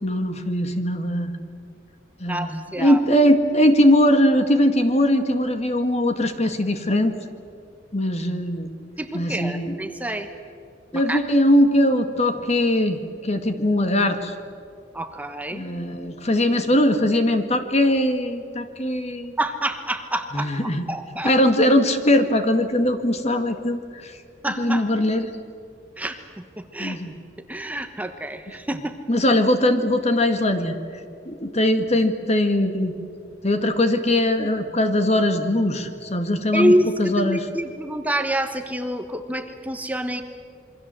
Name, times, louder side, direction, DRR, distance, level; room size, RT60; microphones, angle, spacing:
voice 1, 0.0-1.3 2.2-7.2 7.9-8.7 9.1-9.8 10.9-14.3 15.5-19.3 20.3-20.8 21.2-24.1 24.6-25.3 26.8-27.1 29.1-30.7 31.3-33.0 33.4-36.7 37.0-37.5, left 1 dB, 35° left, 7 dB, 2.0 m, -20 dB
voice 2, 2.3-3.0 9.0-10.3 10.9-11.2 14.9-15.7 19.4-20.5 20.9-21.3 24.4-24.9 26.0-27.0 27.5-28.9 36.5-40.2, right 1 dB, 10° right, 7 dB, 1.1 m, -26 dB
27.5 x 23.5 x 7.7 m, 2.4 s
head